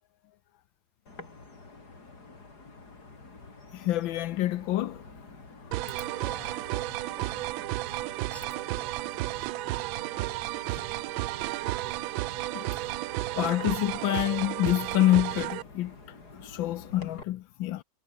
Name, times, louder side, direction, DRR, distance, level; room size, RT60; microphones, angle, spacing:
sound 1, 1.1-17.2, left 3 dB, 55° left, 4.6 m, -49 dB
voice 1, 3.7-5.0 12.5-12.7 13.4-15.9 16.3-17.8, left 14 dB, 80° left, 1.5 m, -27 dB
sound 2, 5.7-15.6, right 18 dB, 85° right, 1.3 m, -33 dB
voice 2, 6.2-7.6 8.3-9.4, left 1 dB, ahead, 3.8 m, -51 dB
omnidirectional pair, 2.1 m